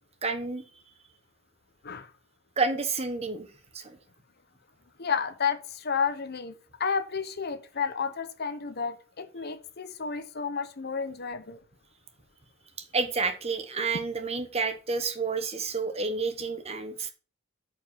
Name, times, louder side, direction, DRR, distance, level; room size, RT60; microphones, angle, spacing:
voice 1, 0.2-0.6 2.6-3.5 3.7-4.0 12.9-17.1, right 4 dB, 30° right, 1.0 m, -30 dB
voice 2, 5.0-6.5 6.8-11.6, left 6 dB, 50° left, 0.9 m, -31 dB
8.7 x 5.1 x 5.7 m
head